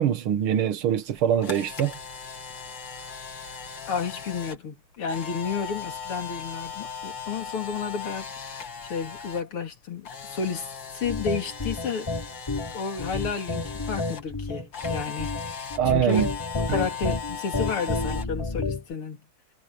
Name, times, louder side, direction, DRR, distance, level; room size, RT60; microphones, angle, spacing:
voice 1, 0.0-1.9 15.8-16.3 16.7-16.8, right 9 dB, 80° right, 2.1 m, -23 dB
Camera, 1.1-9.4 9.7-14.2 14.7-18.2, left 6 dB, 60° left, 2.8 m, -38 dB
voice 2, 3.9-12.1 12.7-15.6 15.9-16.2 16.7-19.3, left 5 dB, 90° left, 3.6 m, -32 dB
sound 1, 11.0-18.9, left 3 dB, 25° left, 0.5 m, -30 dB
omnidirectional pair, 2.3 m